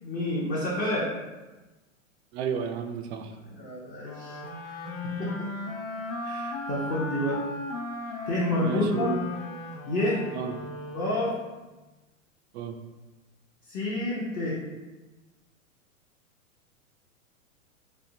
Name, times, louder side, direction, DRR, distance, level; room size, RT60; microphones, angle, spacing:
voice 1, 0.0-1.1 3.4-4.4 4.6-4.7 5.2-5.5 6.2-7.4 8.3-9.1 9.9-10.2 10.9-11.3 13.7-14.6, left 1 dB, 20° left, -6 dB, 0.6 m, -29 dB
voice 2, 2.3-3.3 8.6-9.2 10.3-10.5 12.5-12.8, right 6 dB, 55° right, 6 dB, 0.5 m, -31 dB
sound 1, 4.0-11.5, left 2 dB, 90° left, 0.7 m, -36 dB
4.3 x 2.5 x 2.7 m, 1.1 s
hypercardioid pair, 115°, 40 cm